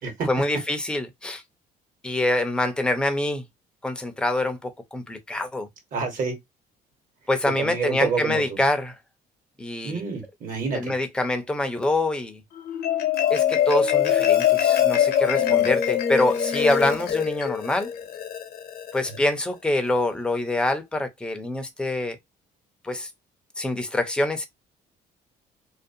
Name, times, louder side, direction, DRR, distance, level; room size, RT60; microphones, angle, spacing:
voice 1, 0.3-1.4 2.0-3.4 3.8-5.7 7.3-8.9 9.6-10.0 10.7-12.4 13.3-17.9 18.9-22.2 22.8-23.1 23.6-24.5, left 1 dB, 5° left, 0.5 m, -25 dB
voice 2, 5.9-6.4 7.6-8.6 9.8-10.9 15.3-15.7 19.1-19.2, right 5 dB, 55° right, 1.2 m, -29 dB
Marimba xylophone, 12.5-19.2, left 9 dB, 65° left, 0.8 m, -23 dB
2.5 x 2.1 x 2.6 m
cardioid pair, 110°, 17 cm